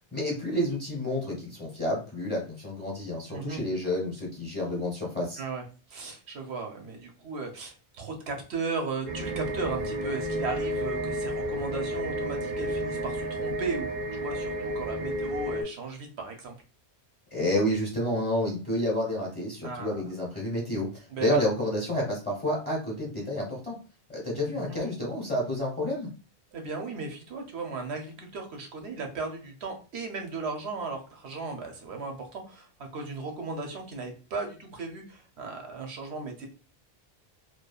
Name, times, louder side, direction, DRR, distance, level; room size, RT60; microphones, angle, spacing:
voice 1, 0.1-5.4 17.3-23.8 24.1-26.1, left 1 dB, 10° left, -4 dB, 0.8 m, -29 dB
voice 2, 5.9-16.5 19.6-20.1 21.1-21.4 24.5-24.8 26.5-32.7 32.9-36.5, right 4 dB, 80° right, 3 dB, 1.0 m, -36 dB
sound 1, 9.1-15.6, equal, 50° right, 0.6 m, -31 dB
3.0 x 2.2 x 2.3 m, 0.35 s
omnidirectional pair, 1.1 m